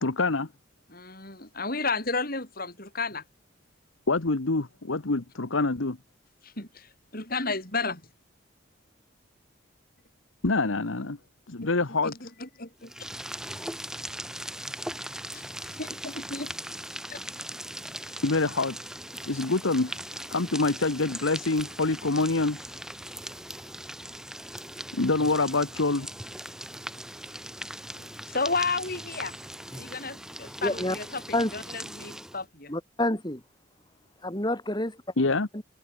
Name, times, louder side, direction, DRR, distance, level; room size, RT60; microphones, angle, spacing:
voice 1, 0.0-0.5 4.1-6.0 10.4-11.2 11.5-12.3 18.2-18.8 19.2-20.0 20.3-22.6 24.9-26.1 35.2-35.5, left 3 dB, 75° left, 1.3 m, -26 dB
voice 2, 0.9-3.2 6.4-6.9 7.1-8.0 11.6-11.7 12.0-12.9 15.3-15.4 15.8-16.5 17.1-17.2 28.3-29.3 29.7-31.1 31.5-31.6 32.0-32.7, left 3 dB, 45° left, 7.5 m, -32 dB
sound 1, 12.8-32.4, right 1 dB, 5° right, 7.5 m, -39 dB
voice 3, 30.6-31.0 31.3-31.5 32.7-33.4 34.2-35.0 35.5-35.6, left 1 dB, 20° left, 3.4 m, -28 dB
head